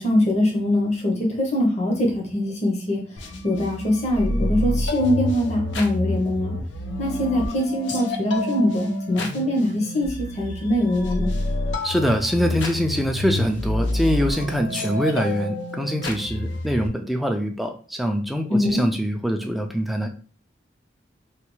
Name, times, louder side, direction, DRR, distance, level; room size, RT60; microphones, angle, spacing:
voice 1, 0.0-3.0 3.4-6.5 7.0-11.3 18.5-18.8, left 1 dB, 40° left, -1 dB, 0.8 m, -22 dB
sound 1, 3.2-16.9, left 1 dB, 85° left, 0.5 m, -28 dB
voice 2, 11.8-20.1, equal, ahead, 4 dB, 0.3 m, -24 dB
3.3 x 2.3 x 3.0 m, 0.41 s
head